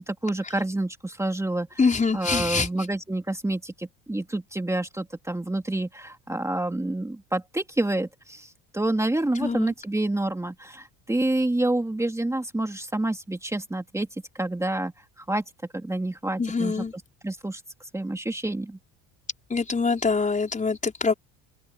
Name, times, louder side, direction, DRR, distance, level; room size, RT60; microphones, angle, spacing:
voice 1, 0.0-1.8 2.1-14.1 14.3-15.4 15.7-16.8 17.2-17.6 17.9-18.8, right 1 dB, 5° right, 2.7 m, -28 dB
voice 2, 1.8-2.7 9.4-9.7 16.4-16.9 19.5-21.1, left 4 dB, 20° left, 5.1 m, -24 dB
open air
supercardioid pair, 110°, 40 cm